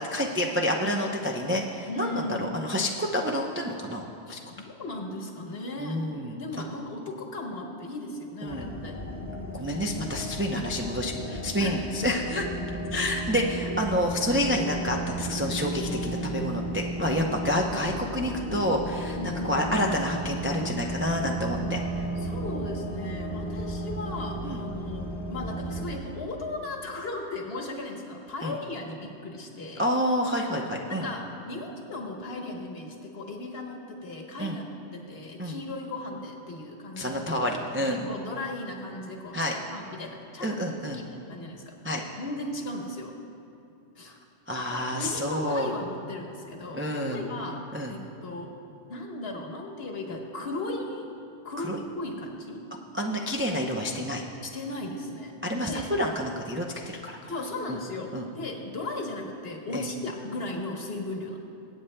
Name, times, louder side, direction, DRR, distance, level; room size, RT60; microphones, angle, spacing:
voice 1, 0.1-4.4 5.8-6.4 8.4-8.7 9.6-12.5 12.9-21.8 24.4-24.6 28.4-28.5 29.8-31.1 34.4-34.6 35.4-35.6 37.0-38.0 39.3-39.5 40.4-41.0 41.8-42.0 44.1-44.2 44.5-45.7 46.7-47.2 47.7-47.9 51.6-51.8 52.9-54.2 55.4-56.6 57.0-57.2 57.7-57.8 58.1-58.3 59.7-59.8, equal, 15° right, 0 dB, 0.4 m, -28 dB
voice 2, 1.9-2.5 4.3-6.0 6.4-9.0 11.6-11.8 19.2-19.6 22.2-25.0 25.3-29.9 30.9-34.7 34.9-37.2 37.8-40.7 40.9-41.8 42.2-43.1 44.0-44.1 44.7-47.6 47.9-48.5 48.9-51.1 51.4-52.6 54.4-55.8 57.3-61.4, left 2 dB, 55° left, 0 dB, 1.4 m, -37 dB
sound 1, 8.5-25.9, right 1 dB, 35° left, 1.1 m, -34 dB
24.0 x 8.5 x 2.2 m, 2.6 s
omnidirectional pair, 1.2 m